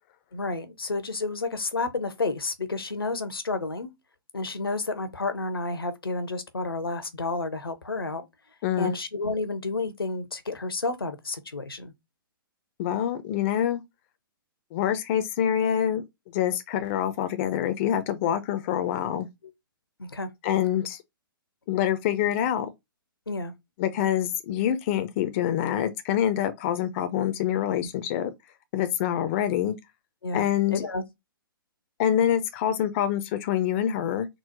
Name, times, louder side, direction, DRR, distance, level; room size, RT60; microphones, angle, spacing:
voice 1, 0.3-3.9 4.3-8.3 8.8-11.9 20.0-20.3 23.3-23.5 30.2-31.0, left 3 dB, 80° left, 0.6 m, -30 dB
voice 2, 8.6-8.9 12.8-13.8 14.7-16.0 16.3-19.3 20.4-21.0 21.7-22.7 23.8-28.3 28.7-29.8 30.3-30.9 32.0-34.3, left 10 dB, 35° left, 0.4 m, -26 dB
3.7 x 2.0 x 2.7 m
figure-of-eight pair, 115°, 12 cm